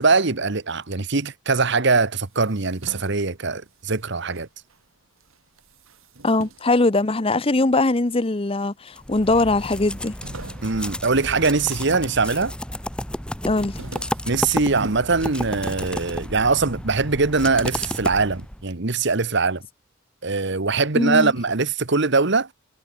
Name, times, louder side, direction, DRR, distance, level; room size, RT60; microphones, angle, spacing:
voice 1, 0.0-4.5 10.6-12.5 14.3-19.6 20.2-22.5, right 4 dB, 60° right, 1.3 m, -22 dB
sound 1, 2.3-4.9 5.2-7.7 8.3-9.0 9.2-9.3 9.6-12.2 12.6-13.0 13.4-16.0, right 2 dB, 85° right, 2.1 m, -43 dB
voice 2, 6.2-10.1 13.4-13.8 20.9-21.3, left 2 dB, 25° left, 0.8 m, -21 dB
sound 2, 9.0-18.7, left 1 dB, 5° left, 2.1 m, -32 dB
head